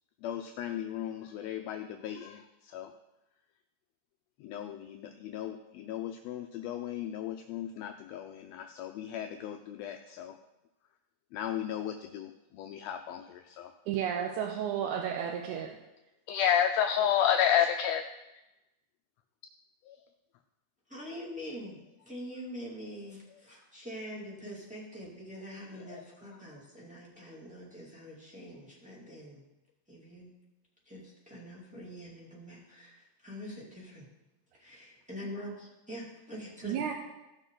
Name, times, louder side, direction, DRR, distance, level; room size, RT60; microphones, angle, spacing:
voice 1, 0.2-2.9 4.4-10.4 11.3-13.7 16.3-18.1 19.8-20.0 25.7-26.0 26.5-26.6, left 9 dB, 80° left, 6 dB, 1.5 m, -32 dB
voice 2, 13.9-15.8 36.6-36.9, right 8 dB, 90° right, 1 dB, 2.2 m, -32 dB
voice 3, 20.9-29.4 29.9-30.3 30.9-34.1 34.5-36.8, equal, 5° right, -6 dB, 2.1 m, -44 dB
15.0 x 6.4 x 3.8 m, 0.99 s
omnidirectional pair, 3.4 m